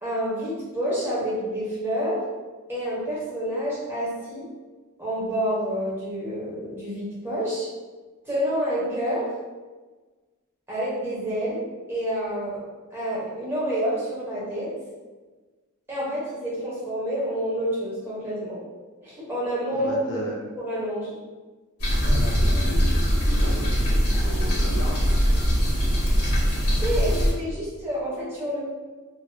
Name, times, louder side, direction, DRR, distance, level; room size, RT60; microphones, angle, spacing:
voice 1, 0.0-2.2 2.7-4.5 5.0-7.7 8.2-9.3 10.7-11.6 11.9-12.6 12.9-14.7 15.9-18.6 19.0-20.2 20.6-21.1 26.8-28.6, equal, 10° right, -8 dB, 0.9 m, -28 dB
voice 2, 19.8-20.3 22.0-25.6, left 1 dB, 55° left, -3 dB, 0.5 m, -36 dB
sound 1, 21.8-27.3, equal, 90° left, 1.0 m, -21 dB
2.7 x 2.6 x 2.2 m, 1.3 s
head